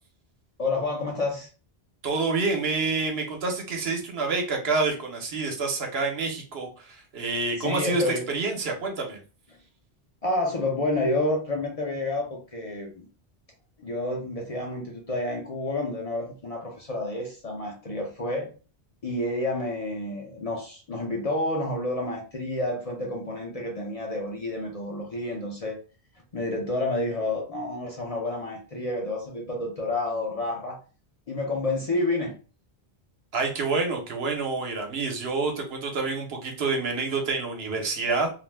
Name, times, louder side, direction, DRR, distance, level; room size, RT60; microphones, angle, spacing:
voice 1, 0.6-1.5 7.6-8.3 10.2-13.1 13.8-18.5 19.0-25.8 26.3-30.8 31.3-32.3, left 2 dB, 45° left, 0 dB, 0.5 m, -29 dB
voice 2, 2.0-9.2 33.3-38.3, right 3 dB, 70° right, 3 dB, 1.0 m, -28 dB
2.4 x 2.1 x 3.2 m, 0.36 s
omnidirectional pair, 1.1 m